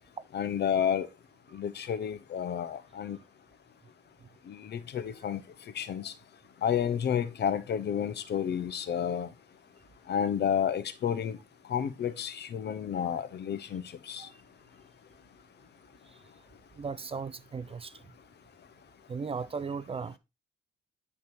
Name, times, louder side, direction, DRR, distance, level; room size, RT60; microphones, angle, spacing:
voice 1, 0.3-1.1 1.5-3.2 4.5-5.4 5.7-6.1 6.6-9.3 10.1-11.4 11.7-14.3, left 8 dB, 55° left, 0.8 m, -31 dB
voice 2, 16.8-18.0 19.1-20.2, right 5 dB, 30° right, 0.5 m, -36 dB
9.7 x 3.4 x 4.4 m
cardioid pair, 90°, 20 cm